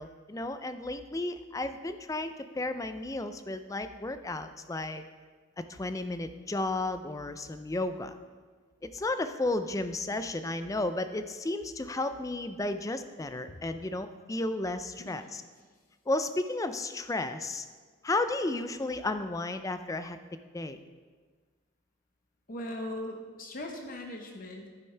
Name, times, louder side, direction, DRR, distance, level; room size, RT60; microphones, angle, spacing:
voice 1, 0.0-5.0 5.7-8.2 8.8-15.4 16.1-17.7 18.0-20.2 20.5-20.8, left 2 dB, 15° left, 10 dB, 0.4 m, -33 dB
voice 2, 22.5-24.7, left 1 dB, 45° left, 2 dB, 0.9 m, -39 dB
10.5 x 9.9 x 3.3 m, 1.5 s
head